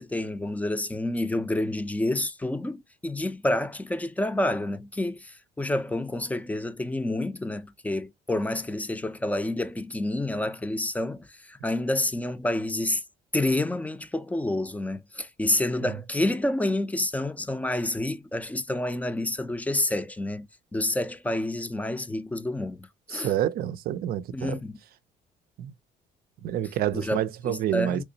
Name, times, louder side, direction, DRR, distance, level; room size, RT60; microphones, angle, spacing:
voice 1, 0.0-13.0 13.3-20.5 20.7-23.3 24.3-24.8 26.9-28.0, left 1 dB, 10° left, 0.4 m, -29 dB
voice 2, 23.1-24.6 25.6-25.7 26.4-28.0, right 11 dB, 65° right, 0.4 m, -28 dB
3.5 x 2.9 x 2.6 m
cardioid pair, 110°, 17 cm